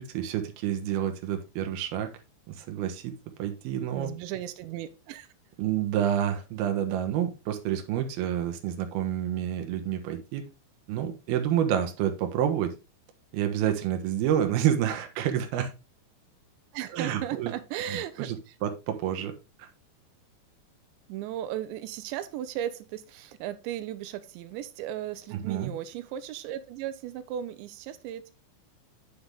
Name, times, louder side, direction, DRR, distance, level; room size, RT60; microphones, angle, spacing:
voice 1, 0.0-2.1 2.5-3.1 3.4-4.1 5.6-10.4 10.9-12.7 13.3-15.7 16.9-17.5 17.9-18.4 18.6-19.3 19.6-19.7 25.3-25.7, right 10 dB, 70° right, 5 dB, 2.8 m, -28 dB
voice 2, 3.9-5.3 16.7-18.6 21.1-28.3, right 11 dB, 90° right, 11 dB, 3.0 m, -36 dB
8.0 x 6.8 x 3.5 m, 0.27 s
omnidirectional pair, 5.0 m